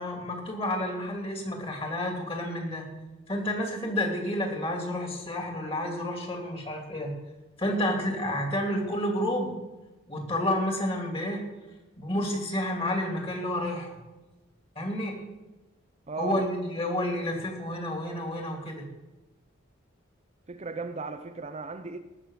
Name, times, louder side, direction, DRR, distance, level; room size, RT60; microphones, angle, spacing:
voice 1, 0.0-2.9 3.3-7.1 7.6-9.6 10.1-11.5 12.0-14.0 14.7-15.2 16.2-18.8, left 1 dB, 30° left, 2.9 m, -30 dB
voice 2, 16.1-16.5 16.8-16.9 20.5-22.0, right 4 dB, 30° right, 0.6 m, -36 dB
18.5 x 6.7 x 6.5 m
head